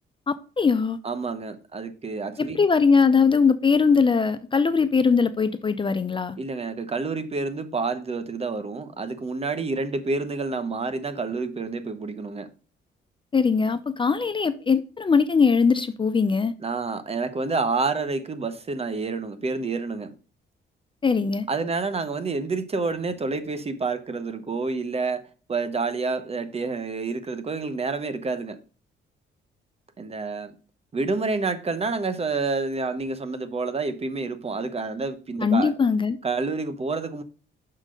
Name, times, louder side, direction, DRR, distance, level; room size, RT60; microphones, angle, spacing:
voice 1, 0.3-1.0 2.4-6.4 13.3-16.5 21.0-21.5 35.4-36.2, left 5 dB, 25° left, 0.5 m, -21 dB
voice 2, 1.0-2.6 6.4-12.5 16.6-20.1 21.5-28.6 30.0-30.5 30.9-35.7 36.2-37.2, right 4 dB, 30° right, 0.9 m, -28 dB
6.3 x 3.9 x 6.3 m
cardioid pair, 90°, 20 cm